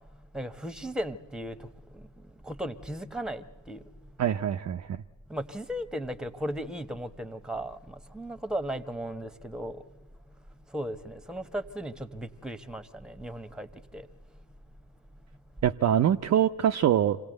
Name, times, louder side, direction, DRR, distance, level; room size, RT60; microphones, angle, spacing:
voice 1, 0.3-1.6 2.5-3.8 5.3-9.8 10.7-13.7 13.9-14.0, equal, ahead, 1.2 m, -36 dB
voice 2, 4.2-5.0 15.6-17.2, right 10 dB, 40° right, 0.6 m, -24 dB
26.0 x 17.0 x 8.0 m
hypercardioid pair, 50°, 41 cm